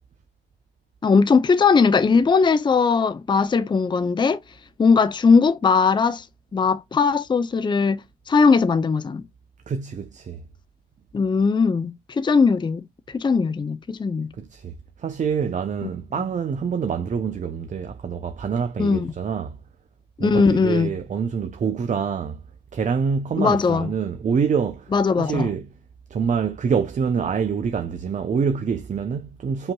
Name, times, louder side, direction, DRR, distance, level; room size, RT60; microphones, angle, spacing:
voice 1, 1.0-4.4 4.8-6.2 6.5-8.0 8.3-9.2 11.1-12.8 13.1-14.3 15.8-15.9 18.8-19.1 20.2-21.0 23.4-23.9 24.9-25.5, left 5 dB, 25° left, 0.5 m, -19 dB
voice 2, 9.7-10.4 14.4-14.7 15.0-19.6 20.2-22.4 22.7-24.9 25.2-25.7 26.1-29.7, right 6 dB, 40° right, 0.6 m, -26 dB
5.4 x 2.9 x 2.3 m
cardioid pair, 90°, 20 cm